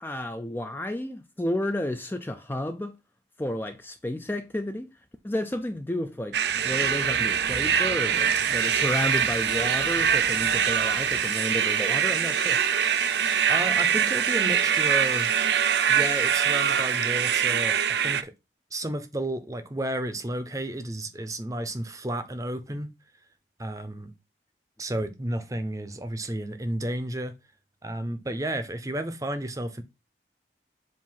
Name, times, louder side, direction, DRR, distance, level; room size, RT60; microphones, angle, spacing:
voice 1, 0.0-3.0 3.4-4.9 5.2-6.4 6.6-12.6, left 1 dB, 10° left, 0.4 m, -31 dB
sound 1, 6.3-18.2, right 8 dB, 70° right, 0.5 m, -24 dB
Purr, 6.4-11.3, right 3 dB, 85° right, 2.4 m, -40 dB
Water tap faucet, 7.7-17.9, left 9 dB, 90° left, 0.7 m, -43 dB
voice 2, 13.5-15.4 15.9-18.3 18.7-22.9 23.6-24.1 24.8-27.3 27.8-29.8, right 1 dB, 20° right, 0.7 m, -32 dB
7.5 x 2.7 x 5.6 m
head